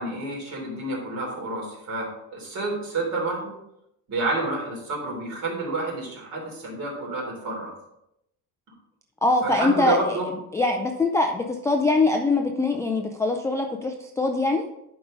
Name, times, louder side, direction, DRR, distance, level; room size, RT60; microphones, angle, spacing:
voice 1, 0.0-3.5 4.1-7.7 9.4-10.2, right 2 dB, 50° right, -2 dB, 3.4 m, -29 dB
voice 2, 9.2-10.2 10.5-14.6, left 2 dB, 10° left, 2 dB, 0.3 m, -23 dB
11.0 x 4.8 x 3.7 m, 0.83 s
cardioid pair, 165°, 36 cm